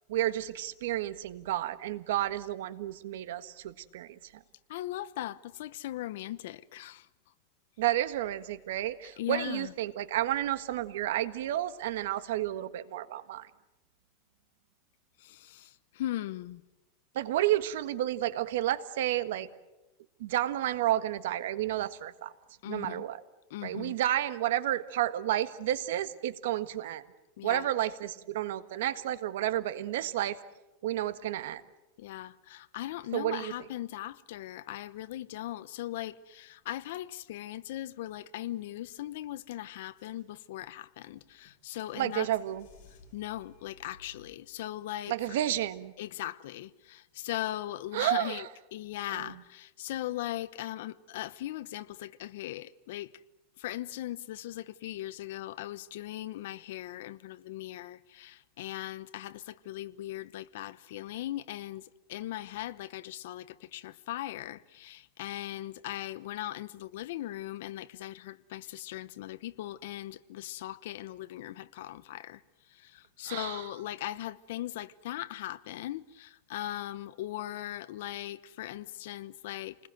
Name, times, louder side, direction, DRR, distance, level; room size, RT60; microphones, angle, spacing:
voice 1, 0.1-4.4 7.8-13.5 17.1-19.5 20.2-22.3 22.6-23.2 23.6-27.0 27.4-30.4 30.8-31.6 33.1-33.5 41.9-42.7 45.1-45.9 47.9-48.5 49.1-49.3 73.2-73.7, right 13 dB, 75° right, 1.5 m, -31 dB
voice 2, 4.7-7.1 9.2-9.7 15.2-16.6 22.6-23.0 23.5-24.0 27.4-27.7 32.0-42.3 43.1-45.1 46.0-48.5 48.7-53.2 53.6-72.4 72.7-79.8, left 14 dB, 70° left, 0.9 m, -39 dB
sound 1, 39.0-39.1 39.4-39.5 39.9-40.7 41.2-44.3, left 3 dB, 55° left, 7.5 m, -58 dB
28.5 x 20.5 x 7.8 m
supercardioid pair, 150°, 0 cm